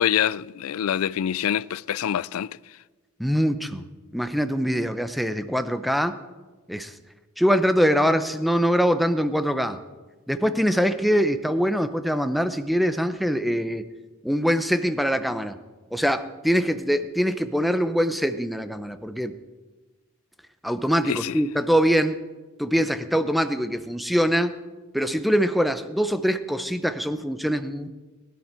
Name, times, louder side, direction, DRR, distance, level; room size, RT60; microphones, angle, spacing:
voice 1, 0.0-2.6 21.0-21.4, left 9 dB, 75° left, 0.4 m, -25 dB
voice 2, 3.2-3.8 4.1-6.2 6.7-6.9 7.4-9.8 10.3-13.8 14.2-15.6 15.9-19.3 20.6-22.2 22.6-24.6 24.9-27.9, equal, ahead, 0.6 m, -23 dB
20.5 x 11.5 x 4.4 m
head